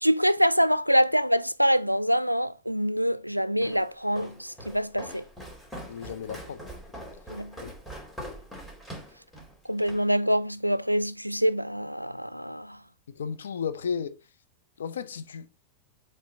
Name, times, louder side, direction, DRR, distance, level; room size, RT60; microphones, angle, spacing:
voice 1, 0.0-5.2 7.3-7.5 9.7-12.8, equal, 90° right, 0.3 m, -25 dB
Walk footsteps, 3.6-10.1, equal, 5° left, 2.5 m, -43 dB
voice 2, 5.9-6.6 7.6-7.7 13.1-14.2 14.8-15.5, left 6 dB, 65° left, 0.6 m, -34 dB
7.4 x 3.3 x 3.9 m
figure-of-eight pair, 90°, 0 cm